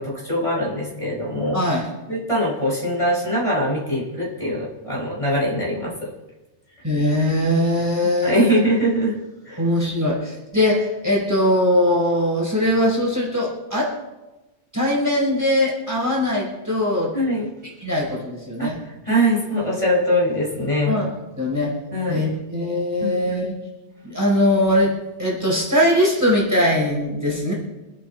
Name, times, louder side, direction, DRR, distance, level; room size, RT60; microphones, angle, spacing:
voice 1, 0.0-1.6 2.1-6.1 8.2-9.1 9.4-9.6 17.1-17.5 18.6-21.0 21.9-22.2 23.0-23.1, equal, 25° left, -4 dB, 5.1 m, -22 dB
voice 2, 1.5-1.9 6.8-8.6 9.6-13.9 14.7-17.1 17.8-18.8 20.9-21.1 21.4-21.8 22.1-23.6 24.0-24.9 25.2-27.5, left 1 dB, 15° right, -4 dB, 4.6 m, -21 dB
26.0 x 8.8 x 4.4 m, 1.1 s
omnidirectional pair, 1.3 m